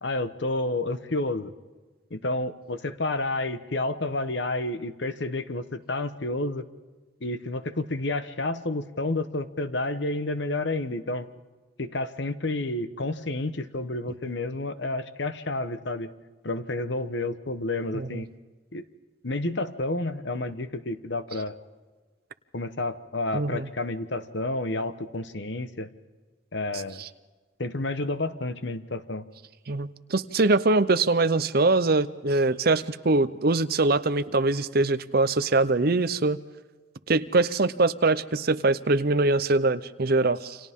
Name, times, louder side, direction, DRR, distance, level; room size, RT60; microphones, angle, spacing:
voice 1, 0.0-1.5 2.1-6.6 7.2-11.3 11.8-16.1 16.4-18.3 18.7-18.8 19.2-21.6 22.5-25.9 26.5-27.0 27.6-29.2, left 2 dB, 60° left, 11 dB, 1.1 m, -30 dB
voice 2, 23.3-23.7 27.0-27.1 29.7-36.4 37.1-40.6, right 3 dB, 50° right, 13 dB, 0.7 m, -23 dB
29.0 x 26.0 x 3.7 m, 1.4 s
head